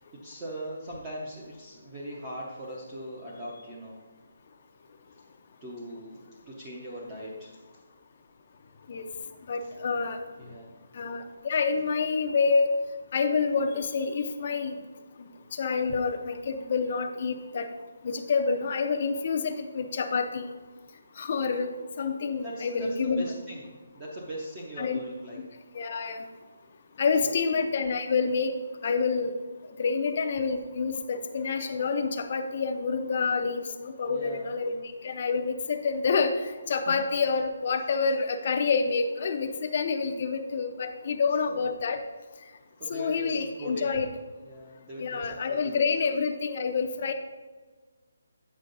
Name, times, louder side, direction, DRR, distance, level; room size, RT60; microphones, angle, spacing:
voice 1, 0.2-4.0 5.6-7.6 10.4-10.7 22.4-25.4 27.2-27.5 34.1-34.5 36.9-37.0 41.4-41.6 42.8-43.9 44.4-45.8, equal, 15° right, -4 dB, 0.7 m, -40 dB
voice 2, 9.5-10.2 10.9-12.7 13.1-14.7 15.2-17.7 18.0-20.5 21.2-23.3 24.8-25.0 25.7-26.2 27.0-28.5 28.8-29.3 29.8-36.4 36.7-42.0 42.9-44.1 45.0-47.1, left 5 dB, 30° left, 6 dB, 0.6 m, -28 dB
8.3 x 5.6 x 3.9 m, 1.4 s
hypercardioid pair, 180°, 0 cm